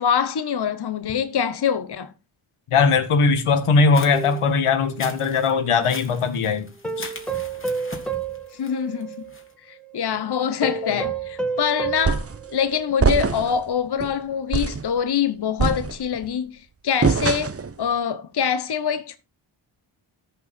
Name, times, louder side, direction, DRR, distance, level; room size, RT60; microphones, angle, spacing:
voice 1, 0.0-2.1 8.5-9.2 9.6-12.2 12.5-19.2, left 7 dB, 50° left, 1.0 m, -25 dB
voice 2, 2.7-6.7 7.0-7.1 10.8-11.0, left 4 dB, 80° left, 1.7 m, -20 dB
sound 1, 3.7-9.5, left 2 dB, 25° left, 3.0 m, -41 dB
sound 2, 4.1-5.7 6.8-9.4 9.8-10.0 10.6-13.2 13.6-13.7, right 5 dB, ahead, 2.1 m, -31 dB
sound 3, 12.0-12.4 13.0-13.6 14.0-14.1 14.5-14.9 15.6-16.3 17.0-17.7, right 5 dB, 30° right, 0.9 m, -22 dB
14.0 x 5.8 x 4.3 m
cardioid pair, 65°, 50 cm